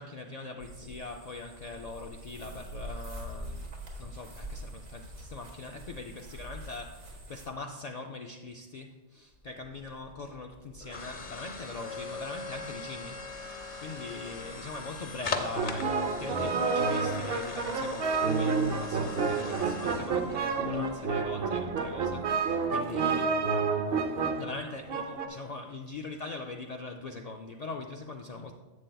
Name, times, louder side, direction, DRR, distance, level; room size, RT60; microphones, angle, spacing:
voice 1, 0.0-23.6 24.4-28.5, left 3 dB, 75° left, 2 dB, 0.3 m, -42 dB
sound 1, 0.6-7.5, right 1 dB, 75° right, 1.7 m, -44 dB
sound 2, 9.4-22.4, left 4 dB, 45° left, 0.8 m, -41 dB
sound 3, 15.6-25.3, right 4 dB, 55° right, 0.8 m, -29 dB
10.5 x 7.7 x 2.3 m, 1.2 s
omnidirectional pair, 1.3 m